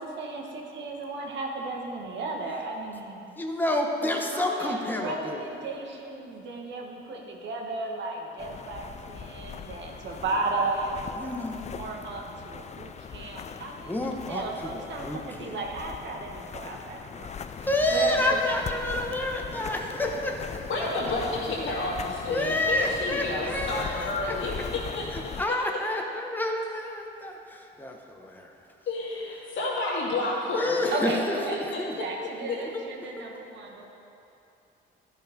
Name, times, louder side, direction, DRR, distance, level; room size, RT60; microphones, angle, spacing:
voice 1, 0.0-3.3 4.0-11.4 11.7-14.0 14.3-18.6 30.9-31.6 32.0-33.9, right 3 dB, 65° right, 0 dB, 1.4 m, -35 dB
voice 2, 3.4-5.5 11.2-11.7 13.8-15.6 17.6-20.7 21.6-21.7 22.3-24.4 25.1-28.5 30.5-31.9 32.7-32.8 33.2-33.3, left 1 dB, 10° left, 1 dB, 1.0 m, -29 dB
sound 1, 8.4-25.5, left 7 dB, 35° left, 0.4 m, -40 dB
voice 3, 20.7-25.3 28.9-30.9 31.5-31.8 32.5-32.6, left 2 dB, 70° left, -6 dB, 2.4 m, -30 dB
12.0 x 5.7 x 5.2 m, 2.8 s
cardioid pair, 90°, 20 cm